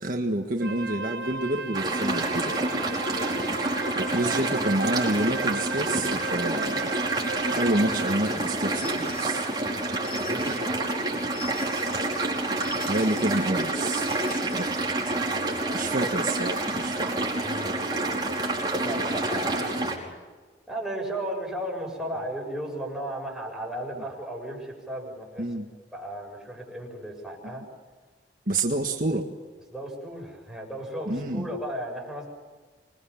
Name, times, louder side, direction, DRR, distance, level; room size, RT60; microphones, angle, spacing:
voice 1, 0.0-2.6 4.0-6.9 7.5-9.5 12.8-14.7 15.1-15.2 15.7-17.3 25.4-25.7 28.5-29.3 31.1-31.5, right 1 dB, 50° right, 3 dB, 1.6 m, -28 dB
Wind instrument woodwind instrument, 0.6-8.2, right 3 dB, 70° right, 1.4 m, -36 dB
sound 1, 1.7-20.0, right 2 dB, 25° right, 5.2 m, -28 dB
sound 2, 8.7-14.8, left 6 dB, 55° left, 7.7 m, -45 dB
voice 2, 9.7-11.1 15.2-16.1 17.4-17.7 18.3-20.1 20.7-25.5 25.9-27.6 29.7-32.3, right 1 dB, ahead, -1 dB, 7.7 m, -36 dB
26.5 x 22.5 x 7.3 m, 1.4 s
head